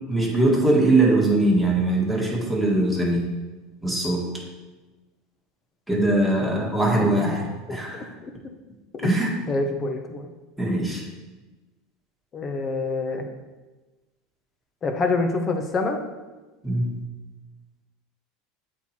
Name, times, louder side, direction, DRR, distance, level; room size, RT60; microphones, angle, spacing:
voice 1, 0.1-3.2 3.8-4.3 5.9-8.0 9.0-9.3 10.6-11.0 16.6-17.0, right 2 dB, ahead, -2 dB, 1.7 m, -21 dB
voice 2, 6.9-7.4 8.2-8.3 8.9-9.1 9.5-10.3 12.3-13.3 14.8-16.0, left 3 dB, 30° left, 5 dB, 0.9 m, -26 dB
8.1 x 4.5 x 4.3 m, 1.2 s
supercardioid pair, 130°, 0 cm